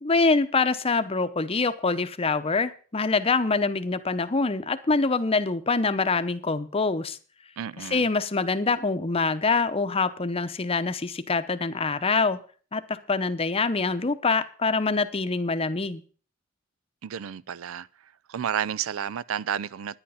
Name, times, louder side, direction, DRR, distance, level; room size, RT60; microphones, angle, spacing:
voice 1, 0.0-7.2 7.8-12.4 12.7-16.0, left 4 dB, 30° left, 0.7 m, -25 dB
voice 2, 7.6-8.1 17.0-17.9 18.3-20.0, right 8 dB, 85° right, 0.4 m, -31 dB
10.5 x 10.0 x 5.6 m
head